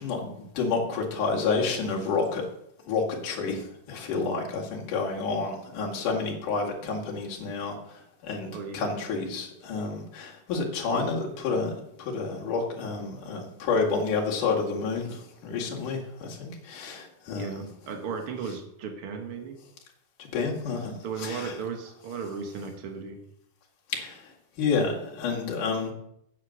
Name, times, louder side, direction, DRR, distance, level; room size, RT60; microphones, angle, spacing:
voice 1, 0.0-2.5 2.9-7.7 8.2-11.7 12.0-17.7 20.2-20.9 21.2-21.5 23.9-24.2 24.6-25.9, left 4 dB, 60° left, -2 dB, 3.3 m, -29 dB
voice 2, 8.5-8.9 17.3-19.6 21.0-23.2, right 5 dB, 50° right, 4 dB, 1.7 m, -35 dB
8.7 x 8.4 x 6.5 m, 0.77 s
omnidirectional pair, 4.5 m